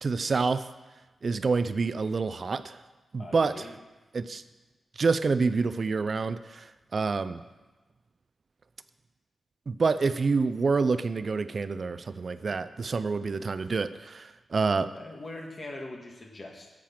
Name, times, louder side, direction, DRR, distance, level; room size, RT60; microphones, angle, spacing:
voice 1, 0.0-0.7 1.2-2.8 3.1-3.7 4.1-4.4 5.0-7.4 9.7-14.9, right 4 dB, 50° right, 12 dB, 0.4 m, -27 dB
voice 2, 3.2-3.7 14.8-16.7, left 2 dB, 45° left, 2 dB, 1.8 m, -42 dB
8.6 x 7.6 x 5.9 m, 1.2 s
cardioid pair, 65°, 0 cm